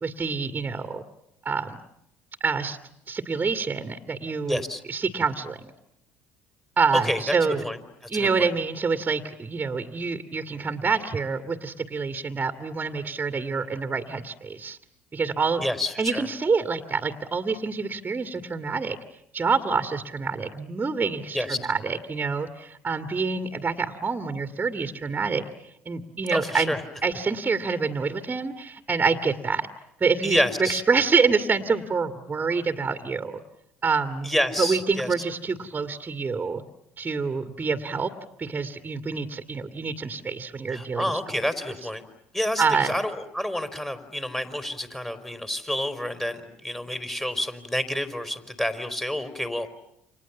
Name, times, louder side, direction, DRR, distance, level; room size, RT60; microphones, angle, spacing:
voice 1, 0.0-1.0 1.4-1.8 2.4-2.8 3.1-4.6 4.9-5.7 6.8-7.6 8.1-14.8 15.1-15.7 16.0-19.0 19.3-25.4 25.9-26.8 27.0-29.7 30.0-33.4 33.8-34.3 34.6-36.6 37.0-38.1 38.4-41.2 42.6-42.9, right 5 dB, 25° right, 8 dB, 2.1 m, -26 dB
voice 2, 4.5-4.8 7.0-7.3 7.6-7.8 8.1-8.5 15.6-16.2 21.3-21.7 26.3-26.8 30.2-30.8 34.2-35.1 40.7-42.0 42.3-49.7, left 1 dB, 10° left, 9 dB, 4.1 m, -28 dB
30.0 x 26.0 x 7.2 m, 0.79 s
hypercardioid pair, 70°, 6 cm